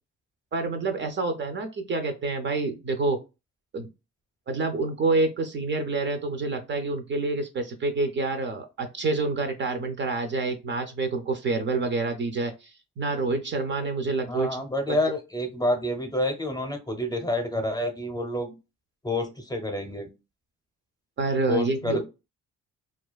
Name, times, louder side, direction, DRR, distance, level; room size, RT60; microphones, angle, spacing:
voice 1, 0.5-3.2 3.7-3.9 4.5-14.6 14.9-15.0 21.2-22.0, right 3 dB, 40° right, 7 dB, 0.4 m, -27 dB
voice 2, 14.3-18.5 19.0-20.1 21.5-22.0, left 1 dB, 15° left, 5 dB, 0.6 m, -28 dB
2.4 x 2.3 x 2.2 m, 0.27 s
cardioid pair, 90°, 30 cm